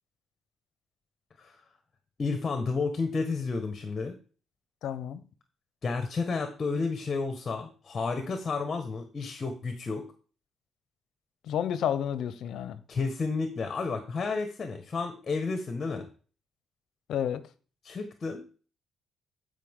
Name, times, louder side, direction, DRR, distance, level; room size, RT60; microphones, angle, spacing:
voice 1, 2.2-4.2 5.8-10.0 12.9-16.1 17.8-18.6, left 4 dB, 40° left, 1.6 m, -31 dB
voice 2, 4.8-5.2 11.4-12.8 17.1-17.5, left 9 dB, 75° left, 0.9 m, -30 dB
14.5 x 5.5 x 3.8 m
cardioid pair, 90°, 0 cm